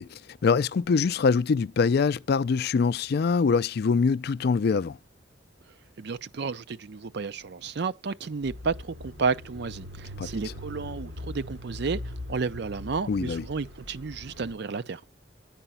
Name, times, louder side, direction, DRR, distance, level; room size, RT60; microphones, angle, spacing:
voice 1, 0.0-5.0 10.2-10.3 13.1-13.4, left 5 dB, 55° left, 0.4 m, -24 dB
voice 2, 6.0-12.0 12.3-15.0, right 4 dB, 60° right, 0.5 m, -32 dB
Bicycle / Mechanisms, 8.4-14.6, left 1 dB, 85° right, 2.5 m, -41 dB
8.9 x 4.9 x 5.6 m
head